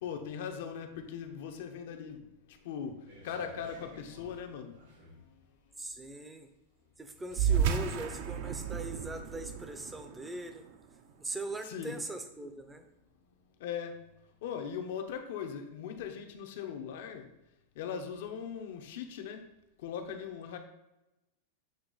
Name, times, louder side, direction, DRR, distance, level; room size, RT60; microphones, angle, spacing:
voice 1, 0.0-4.8 5.2-5.3 11.6-12.0 13.6-14.0 14.4-17.3 17.7-19.5 19.8-20.6, left 7 dB, 65° left, 6 dB, 0.8 m, -40 dB
sound 1, 3.1-5.3 6.1-6.2, equal, 90° right, 2.1 m, -54 dB
voice 2, 5.8-6.5 7.0-10.7 11.2-12.8, right 2 dB, 10° right, 7 dB, 0.5 m, -41 dB
sound 2, 7.3-12.2, right 8 dB, 60° right, 0.6 m, -33 dB
8.0 x 3.0 x 4.0 m, 0.95 s
supercardioid pair, 145°, 0 cm